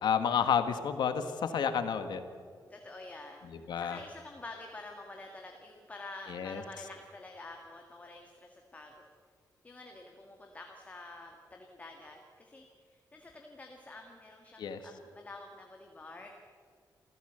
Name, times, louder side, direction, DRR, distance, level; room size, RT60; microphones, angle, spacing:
voice 1, 0.0-2.2 3.7-4.0 6.3-6.6 14.6-14.8, left 7 dB, 90° left, 9 dB, 1.6 m, -30 dB
voice 2, 2.7-9.1 9.6-16.3, left 2 dB, 20° left, 2 dB, 1.8 m, -48 dB
27.5 x 15.0 x 8.0 m, 2.1 s
wide cardioid pair, 165°, 7 cm